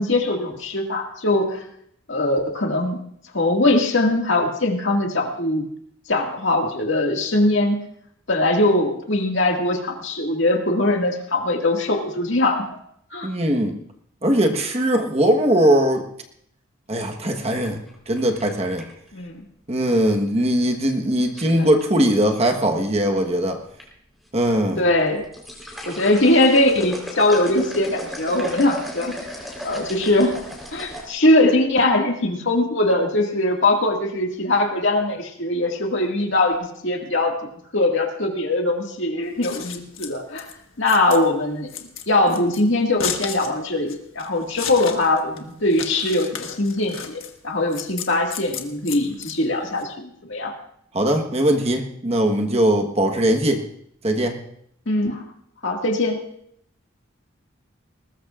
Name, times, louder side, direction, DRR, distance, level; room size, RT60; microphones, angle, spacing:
voice 1, 0.0-1.6 2.1-3.0 3.3-5.6 6.1-7.8 8.3-12.7 13.1-13.3 19.1-19.4 21.5-21.7 24.8-25.2 25.9-29.1 29.6-30.4 30.7-37.5 37.7-40.5 40.8-41.7 42.1-50.5 54.9-55.2 55.6-56.2, left 2 dB, 60° left, 2 dB, 2.0 m, -21 dB
voice 2, 13.2-13.8 14.2-16.0 16.9-17.8 18.1-18.9 19.7-23.6 24.3-24.8 50.9-53.6 54.0-54.4, right 1 dB, 30° right, 3 dB, 1.3 m, -20 dB
sound 1, 17.0-19.1 20.6-20.9 21.4-21.8 22.7-23.3 23.6-23.8 24.3-24.4 25.0-31.1, left 1 dB, ahead, 3.9 m, -35 dB
Scissors, 39.2-49.8, left 8 dB, 80° left, 1.4 m, -34 dB
21.0 x 19.5 x 2.5 m, 0.70 s
head